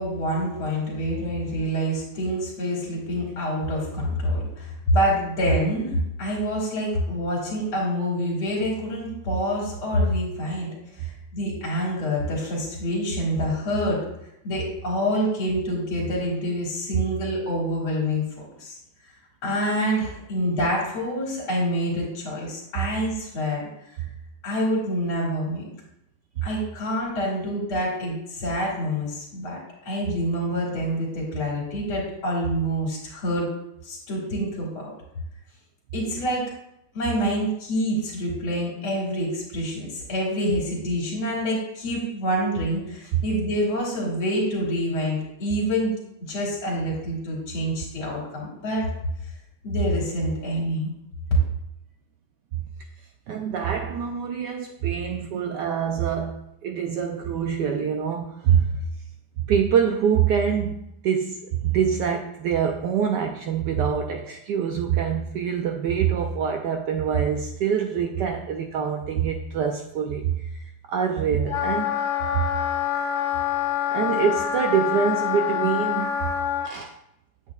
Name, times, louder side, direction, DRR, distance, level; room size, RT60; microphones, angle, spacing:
voice 1, 0.0-14.0 14.4-18.2 18.6-18.8 19.0-19.1 19.4-24.0 24.4-25.7 26.4-29.6 29.8-33.5 33.8-34.9 35.9-36.5 36.9-46.0 46.3-48.9 49.6-50.9, equal, 80° left, -4 dB, 2.7 m, -26 dB
voice 2, 53.3-58.9 59.4-60.8 61.0-70.5 70.9-72.0 72.3-72.5 73.9-76.1 76.6-76.9, right 7 dB, 75° right, 4 dB, 1.0 m, -25 dB
Wind instrument woodwind instrument, 71.5-76.7, left 10 dB, 55° left, 0.8 m, -26 dB
8.2 x 7.8 x 2.3 m, 0.81 s
omnidirectional pair, 2.3 m